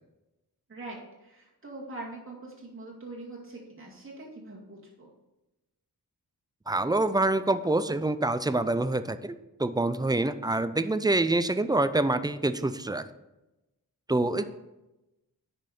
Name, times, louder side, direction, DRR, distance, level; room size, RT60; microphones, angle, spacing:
voice 1, 0.7-5.1, right 2 dB, 35° right, -3 dB, 2.2 m, -43 dB
voice 2, 6.7-13.1 14.1-14.4, right 2 dB, 10° right, 12 dB, 0.3 m, -26 dB
9.8 x 5.2 x 4.3 m, 0.98 s
wide cardioid pair, 110°, 37 cm